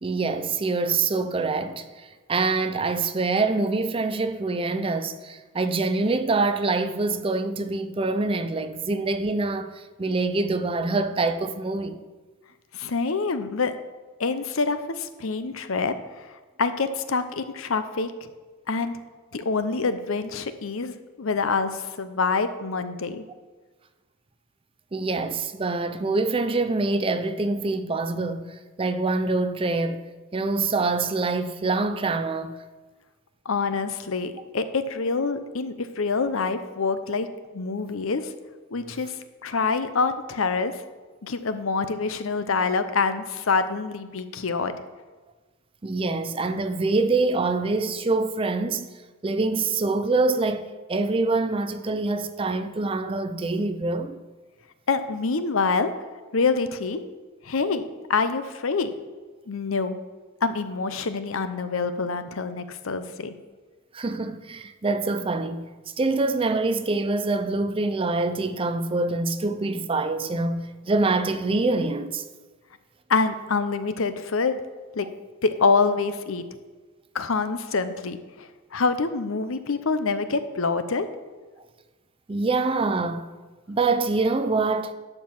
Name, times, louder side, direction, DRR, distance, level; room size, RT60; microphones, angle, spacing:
voice 1, 0.0-12.0 24.9-28.5 28.8-30.0 30.3-32.6 45.8-48.9 49.2-54.2 63.9-65.6 66.0-72.2 82.3-83.3 83.7-84.9, right 3 dB, 25° right, 0.5 m, -25 dB
voice 2, 12.7-13.7 14.2-16.3 16.6-18.1 18.7-18.9 19.3-23.2 33.5-37.3 37.5-38.3 38.7-39.1 39.4-40.7 41.2-44.8 54.9-55.9 56.3-57.0 57.4-57.8 58.1-58.9 59.5-60.0 60.4-63.3 73.1-74.6 74.9-75.1 75.4-76.4 77.1-81.1, left 4 dB, 75° left, 0.7 m, -26 dB
11.5 x 4.6 x 7.2 m
head